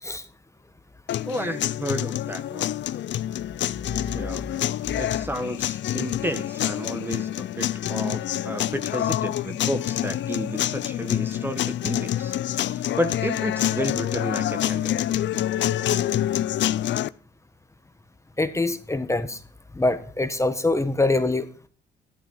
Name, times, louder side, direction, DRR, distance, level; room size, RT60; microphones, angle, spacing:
sound 1, 1.1-17.1, left 12 dB, 65° left, 0.6 m, -27 dB
voice 1, 1.2-2.7 4.1-15.0, equal, 10° right, 10 dB, 1.5 m, -32 dB
voice 2, 18.4-19.4 19.7-21.7, left 2 dB, 15° left, 9 dB, 1.5 m, -24 dB
13.5 x 12.5 x 5.6 m, 0.42 s
cardioid pair, 90°, 20 cm